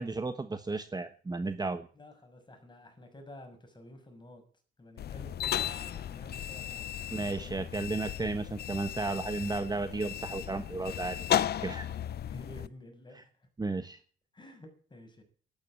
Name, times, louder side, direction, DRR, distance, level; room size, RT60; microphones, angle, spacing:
voice 1, 0.0-1.9 7.1-11.9 13.1-13.2 13.6-14.0, right 3 dB, 20° right, 10 dB, 1.2 m, -34 dB
voice 2, 2.0-4.4 4.8-6.9 7.2-7.7 12.1-13.3 14.3-15.2, left 1 dB, 20° left, 5 dB, 6.2 m, -51 dB
sound 1, 5.0-12.7, left 10 dB, 55° left, 0.6 m, -35 dB
12.5 x 10.5 x 8.7 m, 0.43 s
cardioid pair, 90°, 20 cm